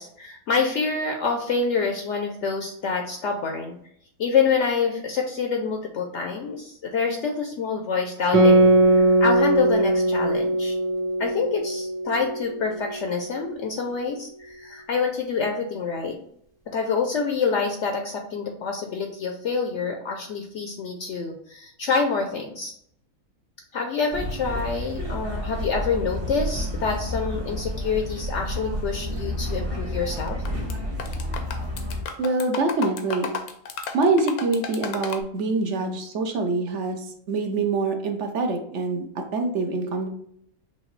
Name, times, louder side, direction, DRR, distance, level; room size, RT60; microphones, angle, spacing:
voice 1, 0.0-3.8 4.2-10.8 11.2-16.2 16.7-22.7 23.7-30.4, left 5 dB, 65° left, 3 dB, 0.8 m, -27 dB
Guitar, 8.3-13.3, right 1 dB, 15° right, 0.8 m, -20 dB
sound 1, 24.1-32.0, equal, 40° right, 1.3 m, -30 dB
sound 2, 30.2-30.7 31.0-35.2, left 6 dB, 80° left, 1.1 m, -33 dB
voice 2, 32.2-33.3 33.9-40.1, right 3 dB, 60° right, 5 dB, 0.9 m, -25 dB
5.8 x 2.6 x 3.1 m, 0.68 s
omnidirectional pair, 1.5 m